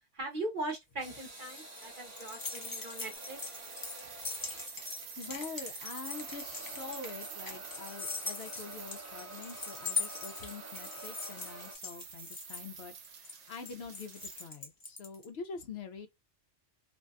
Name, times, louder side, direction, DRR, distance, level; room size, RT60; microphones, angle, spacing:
voice 1, 0.1-3.4, right 2 dB, 50° right, 1.0 m, -40 dB
sound 1, 1.0-15.2, left 4 dB, 25° left, 0.5 m, -41 dB
sound 2, 1.0-11.7, right 2 dB, 20° right, 0.5 m, -49 dB
sound 3, 3.1-14.5, right 7 dB, 75° right, 1.0 m, -48 dB
voice 2, 5.2-16.1, left 5 dB, 65° left, 0.8 m, -45 dB
2.6 x 2.2 x 2.3 m
omnidirectional pair, 1.2 m